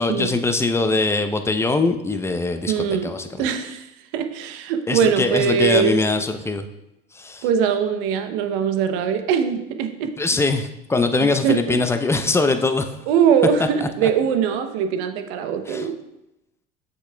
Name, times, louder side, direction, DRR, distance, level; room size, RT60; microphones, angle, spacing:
voice 1, 0.0-2.7 3.0-3.3 4.9-6.7 7.1-7.4 10.2-12.9 13.8-14.1 15.7-15.8, left 3 dB, 10° left, 7 dB, 0.6 m, -22 dB
voice 2, 2.7-6.0 7.4-10.1 11.2-11.8 13.1-16.0, right 7 dB, 70° right, 8 dB, 0.8 m, -22 dB
7.8 x 6.2 x 2.3 m, 0.88 s
hypercardioid pair, 80°, 29 cm